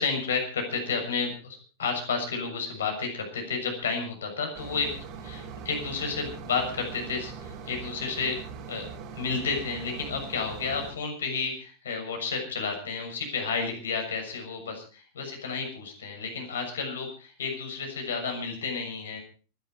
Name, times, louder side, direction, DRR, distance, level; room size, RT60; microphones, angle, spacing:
voice 1, 0.0-8.4 8.7-8.9 9.2-19.2, left 5 dB, 65° left, 4 dB, 6.8 m, -31 dB
sound 1, 4.5-10.9, right 6 dB, 40° right, 4.5 m, -41 dB
24.0 x 11.5 x 4.8 m, 0.37 s
figure-of-eight pair, 90°, 0 cm